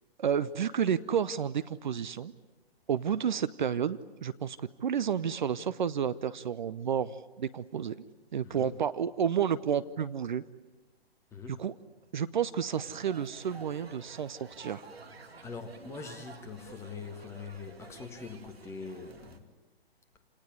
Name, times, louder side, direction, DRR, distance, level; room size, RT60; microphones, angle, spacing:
voice 1, 0.2-2.3 2.9-8.0 8.3-10.4 11.6-11.7 12.1-14.8, right 8 dB, 50° right, 14 dB, 0.8 m, -31 dB
voice 2, 8.4-8.8 11.3-11.6 15.4-19.4, left 5 dB, 10° left, 5 dB, 1.5 m, -43 dB
sound 1, 12.8-19.4, right 3 dB, 75° right, 2.6 m, -51 dB
28.5 x 19.0 x 9.7 m, 1.2 s
figure-of-eight pair, 135°, 31 cm